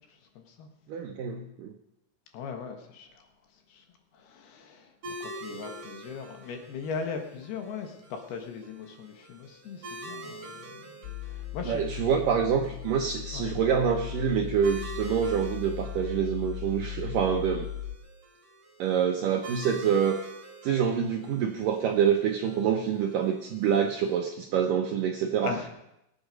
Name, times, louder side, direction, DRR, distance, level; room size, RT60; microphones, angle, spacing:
voice 1, 0.4-0.7 2.3-3.1 3.7-3.8 4.2-10.9 11.3-11.8 13.3-13.5 25.4-25.7, left 5 dB, 70° left, 4 dB, 3.1 m, -39 dB
voice 2, 0.9-1.7 5.5-5.6 11.7-17.7 18.8-20.2 20.6-25.7, right 7 dB, 75° right, 3 dB, 2.0 m, -26 dB
sound 1, 5.0-24.2, right 1 dB, 40° right, 3.2 m, -47 dB
sound 2, 11.0-18.0, left 12 dB, 85° left, 3.0 m, -38 dB
21.5 x 8.5 x 5.2 m, 0.84 s
omnidirectional pair, 5.1 m